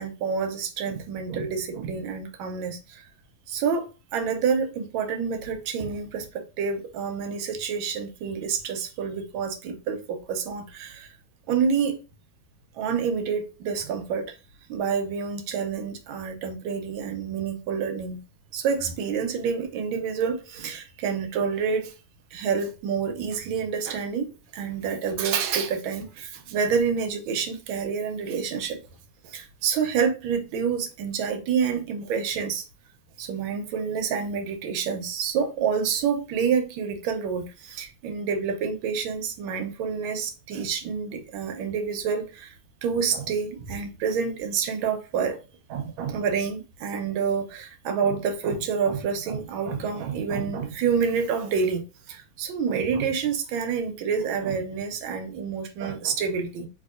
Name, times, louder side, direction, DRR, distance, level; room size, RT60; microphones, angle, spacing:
voice 1, 0.0-3.1 3.5-11.1 11.5-12.0 12.7-14.3 14.7-18.2 18.5-21.9 22.3-28.8 29.2-32.6 33.2-42.6 42.8-45.4 45.7-56.7, right 6 dB, 90° right, 1.4 m, -28 dB
3.5 x 2.6 x 2.3 m
omnidirectional pair, 2.2 m